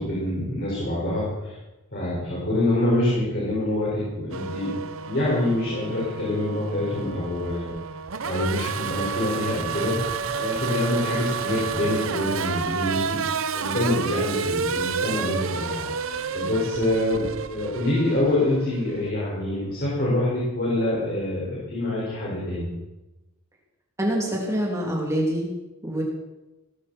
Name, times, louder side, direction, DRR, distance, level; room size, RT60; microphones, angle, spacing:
voice 1, 0.0-1.6 1.9-4.7 5.0-7.7 8.2-9.9 10.3-13.2 13.5-22.7, left 1 dB, 45° left, -6 dB, 5.9 m, -26 dB
Race car auto racing / Accelerating revving vroom, 4.3-19.1, right 5 dB, 65° right, 0.8 m, -30 dB
voice 2, 24.0-25.5 25.8-26.0, right 1 dB, 15° right, -3 dB, 3.2 m, -25 dB
19.0 x 15.0 x 4.6 m, 1.0 s
head